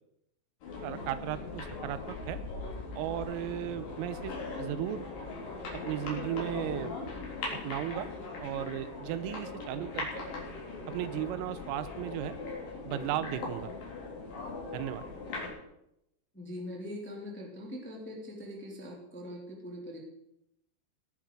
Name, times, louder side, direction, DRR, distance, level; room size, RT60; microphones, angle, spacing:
sound 1, 0.6-15.5, left 3 dB, 45° left, 4.8 m, -40 dB
voice 1, 0.8-2.4 2.9-5.0 5.9-6.9 7.6-8.1 8.4-10.2 10.9-12.4 12.8-13.7 14.7-15.0, right 13 dB, 85° right, 13 dB, 3.4 m, -35 dB
voice 2, 16.3-20.0, left 1 dB, 5° left, -1 dB, 1.7 m, -42 dB
18.5 x 10.0 x 4.9 m, 0.82 s
omnidirectional pair, 5.8 m